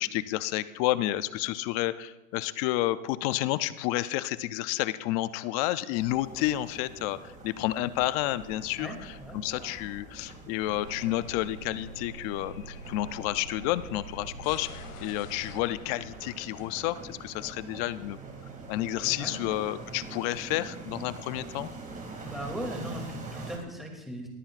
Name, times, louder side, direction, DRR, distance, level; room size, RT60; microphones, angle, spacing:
voice 1, 0.0-18.2 18.7-21.7, left 15 dB, 30° left, 15 dB, 0.3 m, -30 dB
sound 1, 6.0-23.6, right 3 dB, 20° right, 2.3 m, -44 dB
voice 2, 8.8-9.4 19.2-19.3 22.2-24.3, right 1 dB, ahead, 0 dB, 2.5 m, -38 dB
sound 2, 10.6-17.4, right 1 dB, 65° left, 3.0 m, -46 dB
20.5 x 14.0 x 2.4 m, 1.0 s
hypercardioid pair, 125°, 43 cm